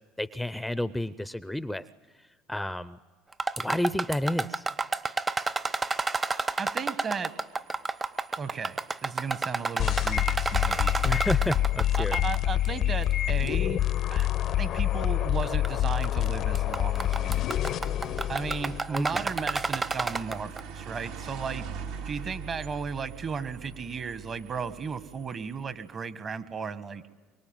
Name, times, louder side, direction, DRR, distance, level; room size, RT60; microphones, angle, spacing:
voice 1, 0.2-1.8 2.5-3.0 3.6-4.6 11.0-12.2 18.9-19.3, left 1 dB, 5° left, 15 dB, 0.7 m, -30 dB
sound 1, 3.3-12.4 12.6-12.7 13.5-13.6 14.2-14.3 15.4-15.7 16.0-16.3 16.5-20.6, right 3 dB, 20° right, 1.1 m, -30 dB
voice 2, 6.6-7.3 8.4-10.9 12.0-13.8 14.1-17.5 18.3-21.7 22.0-27.0, right 5 dB, 35° right, 12 dB, 1.6 m, -35 dB
sound 2, 7.3-25.8, right 6 dB, 75° right, 3.1 m, -46 dB
sound 3, 9.8-18.8, left 13 dB, 55° left, 0.7 m, -27 dB
24.0 x 23.0 x 9.1 m, 1.4 s
hypercardioid pair, 80°, 0 cm